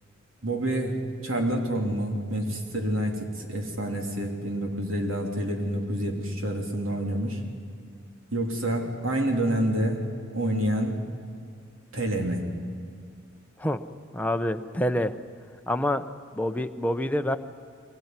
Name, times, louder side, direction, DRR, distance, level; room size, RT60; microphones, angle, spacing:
voice 1, 0.4-1.0 1.2-7.4 8.3-10.0 10.3-11.0 11.9-12.5, right 1 dB, 80° right, 1 dB, 3.3 m, -28 dB
voice 2, 14.1-15.1 15.7-16.0 16.3-17.4, left 1 dB, 10° left, 7 dB, 0.7 m, -26 dB
23.0 x 18.0 x 9.6 m, 2.3 s
head